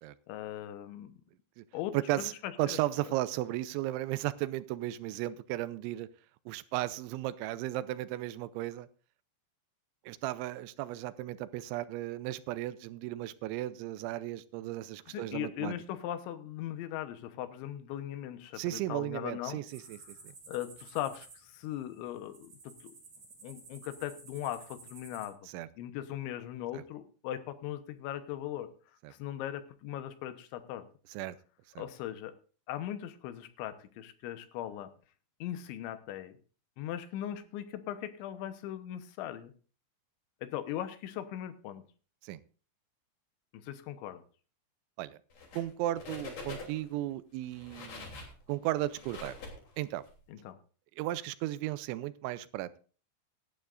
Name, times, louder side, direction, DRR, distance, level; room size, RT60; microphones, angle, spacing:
voice 1, 0.3-1.2 1.7-2.8 15.1-19.6 20.5-22.9 23.4-25.4 25.8-28.7 29.1-30.8 31.8-32.3 32.7-34.9 35.4-36.3 36.8-39.5 40.4-41.8 43.5-44.2 50.3-50.6, left 12 dB, 85° left, 10 dB, 3.3 m, -39 dB
voice 2, 1.9-2.3 2.6-6.1 6.5-8.9 10.1-15.8 18.6-20.3 25.5-25.7 26.7-26.8 29.0-29.1 31.1-31.4 31.8-31.9 42.2-42.4 45.0-45.2 45.6-48.1 48.5-49.4 49.8-50.0 51.0-52.8, right 15 dB, 90° right, 15 dB, 3.0 m, -35 dB
sound 1, 19.7-25.3, right 4 dB, 40° right, 4.2 m, -53 dB
sound 2, 45.3-45.7 46.0-46.9 47.4-50.1, left 3 dB, 45° left, 4.2 m, -45 dB
18.0 x 11.5 x 2.5 m, 0.38 s
omnidirectional pair, 5.2 m